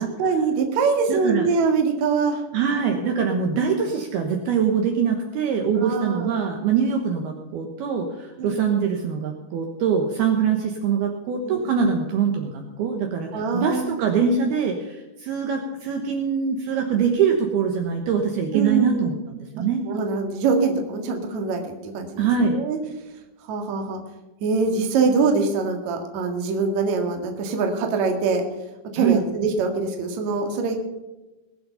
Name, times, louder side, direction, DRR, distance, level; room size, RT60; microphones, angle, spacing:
voice 1, 0.2-2.4 5.8-6.5 8.4-8.7 11.4-11.8 13.3-14.1 18.5-19.1 19.6-22.8 23.5-24.0 24.4-28.4 28.9-30.8, right 4 dB, 50° right, 3 dB, 2.6 m, -24 dB
voice 2, 1.1-1.5 2.5-19.8 22.2-22.6 29.0-29.2, right 6 dB, 70° right, 2 dB, 2.8 m, -23 dB
21.5 x 7.9 x 5.6 m, 1.1 s
omnidirectional pair, 5.3 m